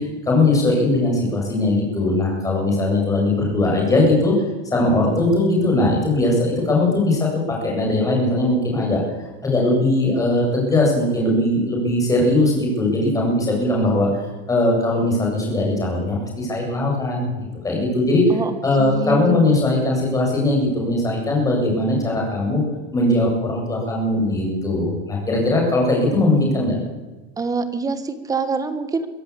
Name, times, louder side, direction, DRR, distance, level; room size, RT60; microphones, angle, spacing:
voice 1, 0.0-4.3 4.7-9.0 9.4-14.1 14.5-18.4 18.6-22.6 22.9-26.8, left 2 dB, 10° left, -1 dB, 8.0 m, -20 dB
voice 2, 18.3-19.5 27.4-29.1, right 4 dB, 10° right, 11 dB, 1.5 m, -25 dB
24.0 x 15.5 x 8.7 m, 1.2 s
supercardioid pair, 165°, 34 cm